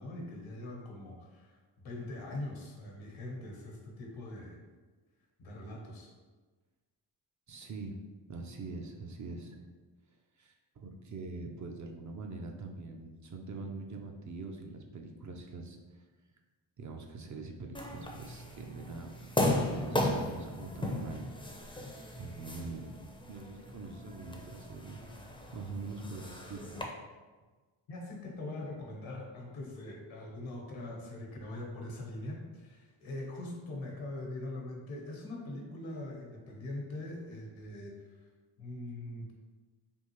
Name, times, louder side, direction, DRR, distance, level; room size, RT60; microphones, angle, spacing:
voice 1, 0.0-4.6 5.4-6.1 27.9-38.3 38.6-39.3, left 2 dB, 75° left, 0 dB, 1.0 m, -42 dB
voice 2, 7.5-8.0 8.3-9.7 10.4-16.0 16.8-21.3 21.6-21.8 22.1-23.0 23.3-25.0 25.5-26.8, right 3 dB, 40° right, 2 dB, 0.5 m, -44 dB
sound 1, 17.7-26.8, left 1 dB, 10° left, 0.5 m, -36 dB
3.6 x 2.4 x 3.0 m, 1.3 s
cardioid pair, 60°, 48 cm